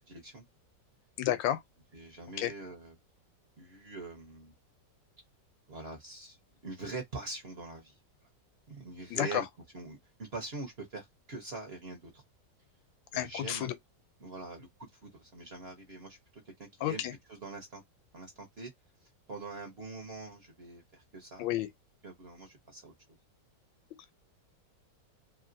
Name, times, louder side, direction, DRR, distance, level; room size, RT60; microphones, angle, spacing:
voice 1, 0.1-0.5 1.9-2.9 3.6-4.5 5.7-6.4 6.6-8.0 8.7-9.5 9.7-12.2 13.1-13.7 14.2-17.0 17.3-17.8 18.1-18.7 19.0-21.5 22.0-22.9, right 3 dB, 45° right, 0.8 m, -44 dB
voice 2, 1.2-1.6 2.4-2.5 9.1-9.4 13.1-13.7 16.8-17.1 21.4-21.7, left 12 dB, 90° left, 1.3 m, -31 dB
2.9 x 2.7 x 2.6 m
omnidirectional pair, 2.0 m